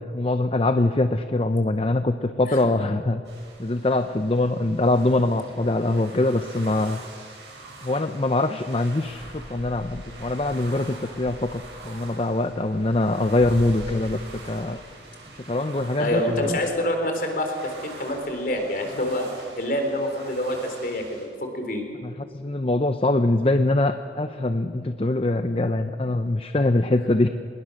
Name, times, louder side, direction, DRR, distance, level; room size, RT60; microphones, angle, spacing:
voice 1, 0.0-3.2 3.6-7.0 7.8-14.8 15.3-16.6 22.0-27.3, left 2 dB, 30° left, 9 dB, 0.6 m, -23 dB
sound 1, 3.2-21.3, right 2 dB, 75° right, 7.4 m, -44 dB
voice 2, 16.0-21.8, left 1 dB, 50° left, 4 dB, 3.8 m, -27 dB
26.0 x 21.0 x 6.6 m, 2.2 s
head